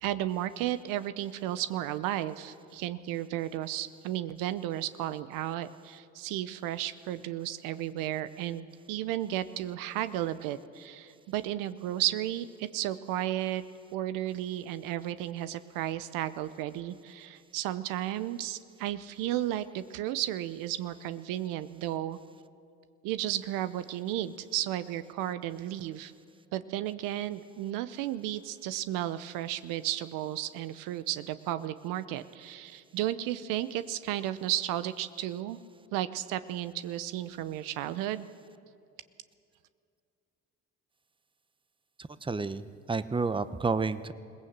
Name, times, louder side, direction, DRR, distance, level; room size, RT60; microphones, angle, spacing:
voice 1, 0.0-13.6 13.9-22.2 23.0-26.1 26.5-35.6 35.9-38.3, right 13 dB, 85° right, 13 dB, 0.8 m, -33 dB
voice 2, 42.0-44.1, right 4 dB, 15° right, 14 dB, 0.8 m, -31 dB
21.5 x 17.5 x 8.1 m, 2.4 s
supercardioid pair, 65°, 32 cm